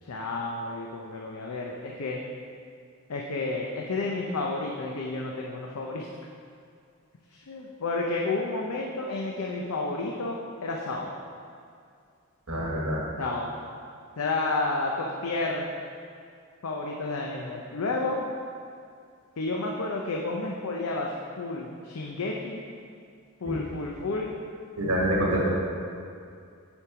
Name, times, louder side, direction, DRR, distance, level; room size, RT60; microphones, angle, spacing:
voice 1, 0.0-2.2 3.1-6.1 7.3-11.1 13.2-13.5 14.2-15.6 16.6-18.3 19.4-22.6 23.4-24.3, left 3 dB, 85° left, -1 dB, 0.6 m, -31 dB
voice 2, 12.5-13.0 23.4-23.6 24.8-25.5, right 1 dB, 90° right, -3 dB, 1.5 m, -26 dB
7.2 x 5.3 x 4.8 m, 2.4 s
head